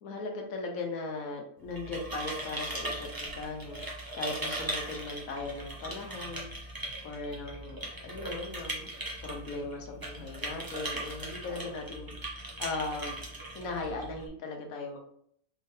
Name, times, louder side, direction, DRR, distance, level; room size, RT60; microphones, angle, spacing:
voice 1, 0.0-3.8 4.1-13.2 13.5-15.0, left 3 dB, 65° left, 2 dB, 1.2 m, -38 dB
sound 1, 1.6-14.3, right 1 dB, 25° right, 0.5 m, -39 dB
4.4 x 3.5 x 2.7 m, 0.65 s
omnidirectional pair, 1.7 m